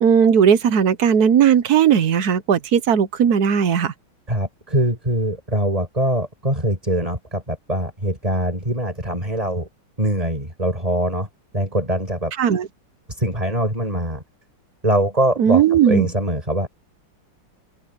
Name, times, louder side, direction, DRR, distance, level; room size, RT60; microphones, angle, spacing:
voice 1, 0.0-3.9 12.4-12.7 15.4-16.1, right 8 dB, 55° right, 1.3 m, -16 dB
voice 2, 4.3-9.7 10.0-11.3 11.5-12.3 13.1-14.2 14.8-16.7, right 1 dB, 15° right, 6.9 m, -23 dB
omnidirectional pair, 2.3 m